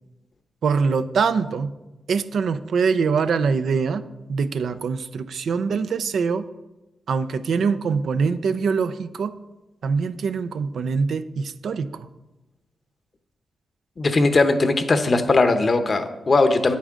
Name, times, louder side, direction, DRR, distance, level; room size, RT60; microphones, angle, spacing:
voice 1, 0.6-1.7 2.1-4.0 4.3-6.5 7.1-9.3 9.8-12.1, right 5 dB, 75° right, 11 dB, 0.4 m, -23 dB
voice 2, 14.0-16.8, left 3 dB, 50° left, 9 dB, 0.9 m, -19 dB
8.9 x 8.4 x 3.7 m, 1.0 s
supercardioid pair, 50°, 0 cm